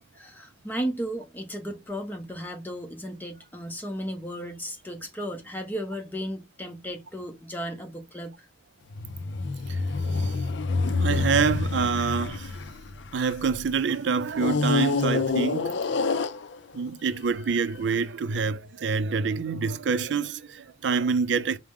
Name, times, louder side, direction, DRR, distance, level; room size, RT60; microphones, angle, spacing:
voice 1, 0.1-8.5, equal, 10° left, 0.7 m, -35 dB
sound 1, 8.9-13.6 14.3-16.9 17.6-17.7, left 4 dB, 85° left, 0.4 m, -27 dB
voice 2, 10.8-12.5 13.1-15.8 16.7-21.6, right 5 dB, 80° right, 0.4 m, -26 dB
4.7 x 2.1 x 3.5 m
head